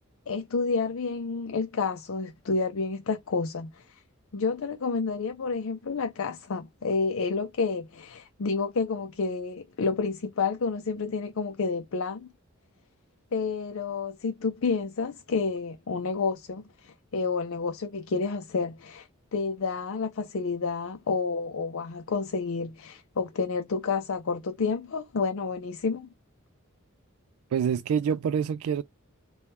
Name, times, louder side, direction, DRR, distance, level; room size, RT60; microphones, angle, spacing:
voice 1, 0.3-4.0 4.3-12.3 13.3-26.1, left 4 dB, 70° left, 0.5 m, -30 dB
voice 2, 27.5-28.8, right 7 dB, 80° right, 0.3 m, -26 dB
3.6 x 2.3 x 4.1 m
head